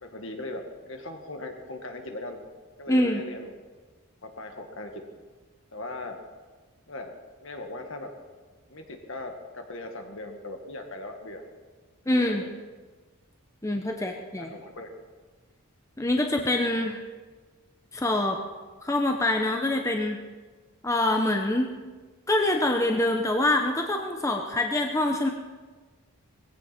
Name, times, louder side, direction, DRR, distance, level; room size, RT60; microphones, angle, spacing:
voice 1, 0.0-2.4 2.8-3.5 4.2-4.9 5.7-6.2 6.9-7.2 7.4-8.1 8.7-11.4 12.1-12.5 13.9-14.9, left 2 dB, 60° left, 4 dB, 2.0 m, -39 dB
voice 2, 2.9-3.2 12.1-12.4 13.6-14.5 16.0-17.0 17.9-18.4 18.8-20.2 20.8-21.8 22.3-25.3, left 1 dB, 15° left, 3 dB, 0.8 m, -25 dB
20.0 x 16.0 x 4.4 m, 1.4 s
head